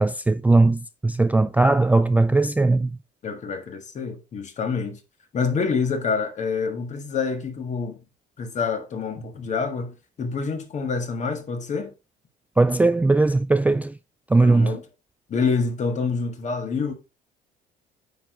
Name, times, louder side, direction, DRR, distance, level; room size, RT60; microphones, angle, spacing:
voice 1, 0.0-3.0 12.6-14.0 14.3-14.8, right 2 dB, 10° right, 0.3 m, -19 dB
voice 2, 3.2-5.0 5.3-8.0 8.4-11.9 14.4-14.8 15.3-16.9, left 5 dB, 45° left, 1.7 m, -27 dB
9.0 x 4.7 x 3.8 m
cardioid pair, 110°, 17 cm